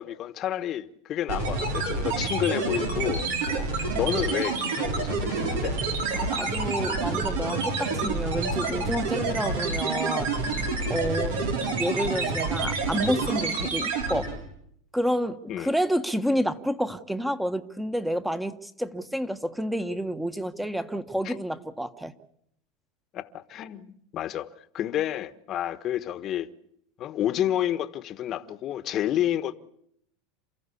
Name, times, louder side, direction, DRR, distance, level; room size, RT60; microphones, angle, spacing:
voice 1, 0.0-5.8 15.5-15.7 21.2-21.3 23.1-23.9 24.1-24.5 24.7-26.5 27.0-29.5, left 11 dB, 40° left, 1.3 m, -30 dB
sound 1, 1.3-14.4, right 3 dB, 90° right, 6.0 m, -28 dB
voice 2, 6.1-10.3 10.9-11.4 11.8-14.3 14.9-22.1, equal, 5° right, 1.4 m, -29 dB
28.5 x 14.5 x 8.4 m
supercardioid pair, 130°, 0 cm